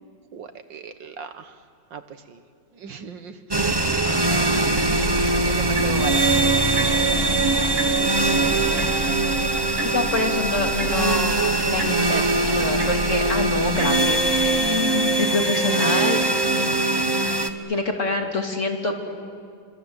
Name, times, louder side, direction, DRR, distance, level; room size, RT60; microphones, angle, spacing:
voice 1, 0.3-1.5 1.9-2.0 2.3-2.4 2.8-3.3 4.0-4.4 5.4-6.5, right 5 dB, 70° right, 9 dB, 1.9 m, -36 dB
sound 1, 3.5-17.5, right 2 dB, 15° right, 0.9 m, -22 dB
sound 2, 4.8-14.7, right 1 dB, 90° right, 2.9 m, -33 dB
voice 2, 8.2-8.9 9.8-16.2 17.7-18.9, left 2 dB, 35° left, 1 dB, 3.0 m, -26 dB
29.5 x 25.0 x 8.0 m, 2.2 s
omnidirectional pair, 2.1 m